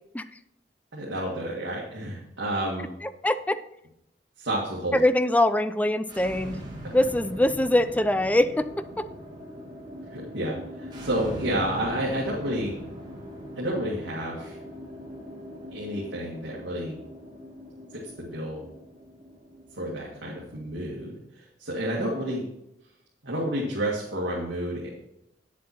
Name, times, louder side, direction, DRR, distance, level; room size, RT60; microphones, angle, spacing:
voice 1, 0.9-2.9 4.4-5.0 10.1-12.7 13.6-14.6 15.7-17.0 17.9-18.7 19.8-22.5 23.2-24.9, right 1 dB, 70° right, -5 dB, 1.9 m, -30 dB
voice 2, 3.0-3.6 4.9-6.6 6.9-8.7 9.0-9.1, left 1 dB, 10° left, 13 dB, 0.3 m, -23 dB
sound 1, 6.1-21.0, equal, 25° right, 1.9 m, -41 dB
8.7 x 7.4 x 4.2 m, 0.84 s
head